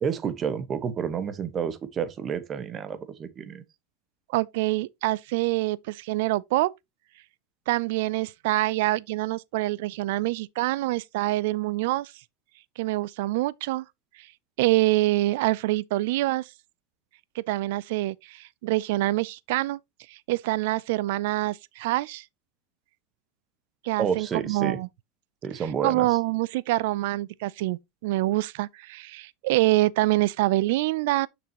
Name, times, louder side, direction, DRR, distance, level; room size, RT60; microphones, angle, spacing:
voice 1, 0.0-3.6 24.0-24.8 25.4-26.1, right 7 dB, 30° right, 1.1 m, -30 dB
voice 2, 4.3-6.7 7.7-12.1 12.8-13.8 14.6-16.5 17.4-19.8 20.1-22.2 23.8-24.9 25.8-31.3, right 18 dB, 70° right, 0.4 m, -25 dB
6.8 x 6.0 x 2.9 m
supercardioid pair, 120°, 0 cm